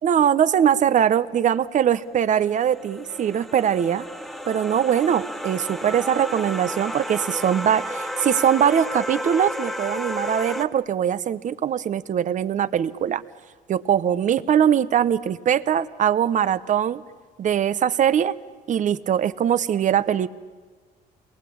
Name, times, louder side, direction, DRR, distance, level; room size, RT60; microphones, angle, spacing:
voice 1, 0.0-4.0 4.5-13.2 13.7-17.0 17.4-18.3 18.7-20.3, right 9 dB, 45° right, 15 dB, 1.0 m, -21 dB
sound 1, 2.2-10.7, equal, ahead, 1.3 m, -32 dB
28.5 x 22.5 x 8.7 m, 1.4 s
cardioid pair, 110°, 17 cm